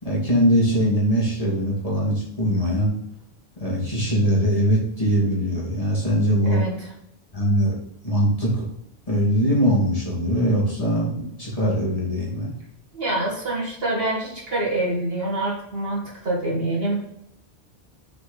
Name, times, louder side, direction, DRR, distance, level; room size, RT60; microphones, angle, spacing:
voice 1, 0.0-2.9 3.6-6.6 7.3-7.8 8.0-8.7 9.1-12.5, equal, 35° left, -5 dB, 2.5 m, -21 dB
voice 2, 6.4-6.9 12.9-17.0, right 2 dB, 60° right, -3 dB, 2.4 m, -26 dB
6.6 x 5.0 x 4.0 m, 0.76 s
omnidirectional pair, 1.1 m